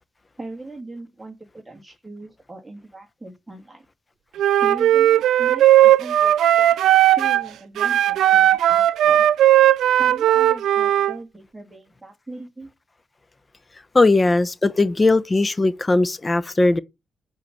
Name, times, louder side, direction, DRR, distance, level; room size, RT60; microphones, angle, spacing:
voice 1, 0.4-3.8 4.6-6.8 7.2-9.2 10.0-12.7, right 2 dB, 15° right, 2.8 m, -39 dB
Wind instrument woodwind instrument, 4.4-7.5 7.8-11.1, right 12 dB, 85° right, 0.4 m, -16 dB
voice 2, 13.9-16.8, left 2 dB, 30° left, 0.8 m, -18 dB
8.3 x 4.8 x 7.0 m
cardioid pair, 70°, 0 cm